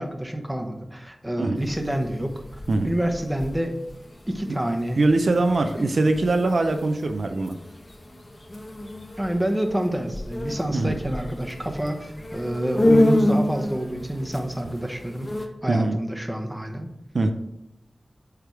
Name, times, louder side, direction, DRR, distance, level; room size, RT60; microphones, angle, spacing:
voice 1, 0.0-2.4 2.8-3.7 4.3-5.0 5.8-5.9 9.2-16.9, right 1 dB, 10° right, 3 dB, 0.9 m, -28 dB
sound 1, 1.6-15.5, left 1 dB, 30° left, 0.9 m, -29 dB
voice 2, 5.0-7.6 10.7-10.9 15.7-15.9 17.1-17.3, right 2 dB, 70° right, 6 dB, 0.5 m, -22 dB
8.1 x 3.5 x 4.6 m, 0.85 s
wide cardioid pair, 85°, 0 cm